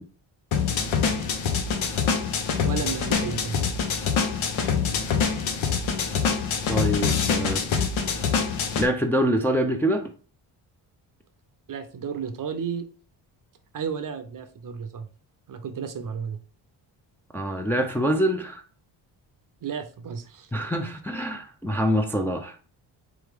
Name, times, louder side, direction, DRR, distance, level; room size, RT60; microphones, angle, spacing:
sound 1, 0.5-8.9, left 6 dB, 75° left, 0.8 m, -25 dB
voice 1, 2.6-3.6 11.7-12.9 13.7-15.1 15.5-16.4 19.6-20.5, right 7 dB, 40° right, 8 dB, 0.6 m, -33 dB
voice 2, 6.7-7.6 8.8-10.1 17.3-18.6 20.5-22.6, equal, 5° left, 3 dB, 0.5 m, -25 dB
3.4 x 3.2 x 3.4 m, 0.41 s
cardioid pair, 65°, 49 cm